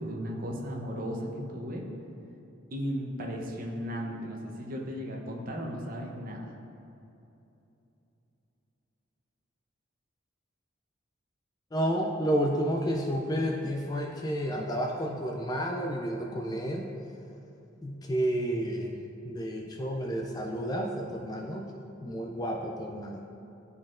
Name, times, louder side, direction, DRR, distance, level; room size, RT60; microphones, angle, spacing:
voice 1, 0.0-1.8 2.7-6.5, equal, 45° right, -1 dB, 0.8 m, -35 dB
voice 2, 11.7-16.8 17.8-18.9 19.2-21.7 22.0-23.2, equal, 20° left, 1 dB, 0.3 m, -31 dB
10.5 x 4.1 x 2.5 m, 2.9 s
head